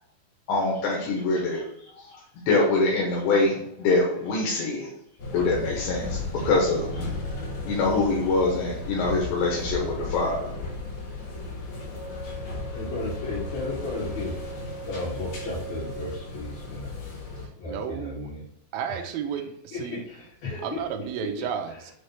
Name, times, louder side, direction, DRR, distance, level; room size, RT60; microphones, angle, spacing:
voice 1, 0.5-4.9 5.3-7.1 7.6-10.5, left 3 dB, 80° left, -3 dB, 3.4 m, -25 dB
sound 1, 5.2-17.5, left 2 dB, 60° left, 3.8 m, -35 dB
voice 2, 12.7-14.5 14.8-16.9 17.6-18.4 18.9-19.1 19.7-20.8 21.7-21.9, left 3 dB, 45° left, -10 dB, 3.2 m, -34 dB
voice 3, 17.7-18.3 18.7-20.0 20.6-21.9, right 8 dB, 80° right, 4 dB, 2.1 m, -32 dB
8.2 x 3.2 x 4.8 m, 0.72 s
omnidirectional pair, 5.0 m